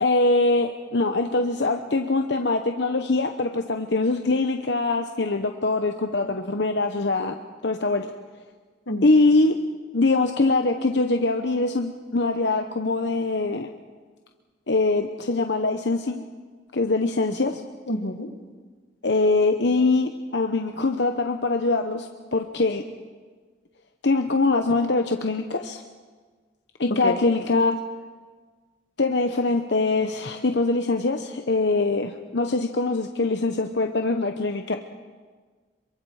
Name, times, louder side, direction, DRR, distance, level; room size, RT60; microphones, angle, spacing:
voice 1, 0.0-7.3 7.6-8.1 9.0-9.5 9.9-13.7 14.7-16.2 16.7-17.6 19.0-22.1 22.3-22.8 24.0-25.8 26.8-27.8 29.0-34.8, left 3 dB, 65° left, 5 dB, 1.0 m, -23 dB
voice 2, 17.9-18.3 27.0-27.2, left 1 dB, 85° left, 6 dB, 2.0 m, -28 dB
26.5 x 23.5 x 4.9 m, 1.5 s
head